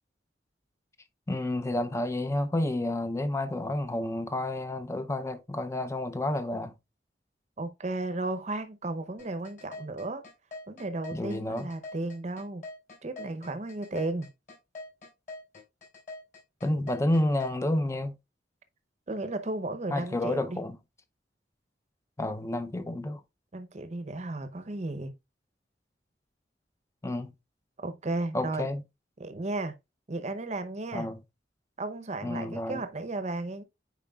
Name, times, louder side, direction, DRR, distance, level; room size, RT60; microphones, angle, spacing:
voice 1, 1.3-6.7 11.1-11.7 16.6-18.2 19.9-20.8 22.2-23.2 27.0-27.3 28.3-28.8 30.9-31.2 32.2-32.8, left 1 dB, 15° left, 0.5 m, -30 dB
voice 2, 7.6-10.2 10.7-12.6 13.0-14.3 19.1-20.6 23.5-25.1 27.8-28.7 29.2-29.7 30.1-31.1 31.8-33.6, right 2 dB, 40° right, 0.7 m, -34 dB
sound 1, 9.2-17.5, left 2 dB, 45° left, 4.4 m, -43 dB
8.9 x 4.7 x 2.3 m
head